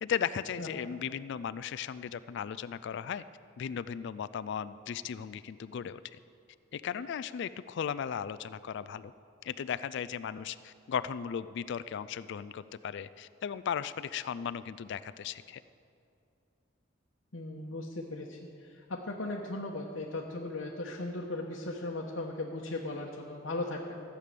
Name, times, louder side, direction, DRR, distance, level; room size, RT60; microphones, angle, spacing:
voice 1, 0.0-3.2 3.6-6.2 6.7-9.1 9.4-15.6, left 8 dB, 65° left, 14 dB, 0.3 m, -36 dB
voice 2, 17.3-24.0, left 2 dB, 80° left, -2 dB, 1.1 m, -37 dB
14.5 x 8.4 x 6.8 m, 2.6 s
head